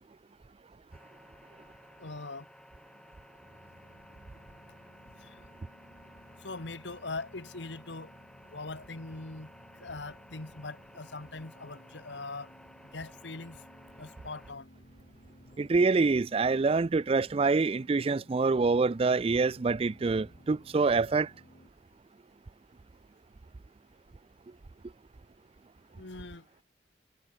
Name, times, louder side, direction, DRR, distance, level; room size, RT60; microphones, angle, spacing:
sound 1, 0.9-14.5, equal, 5° left, 6.4 m, -55 dB
voice 1, 2.0-2.5 5.2-5.4 6.4-8.1 8.5-12.5 12.9-13.6 14.0-14.7 26.0-26.4, left 3 dB, 85° left, 1.7 m, -41 dB
sound 2, 3.4-21.7, equal, 50° left, 3.8 m, -58 dB
voice 2, 15.6-21.3, right 4 dB, 30° right, 0.4 m, -26 dB
head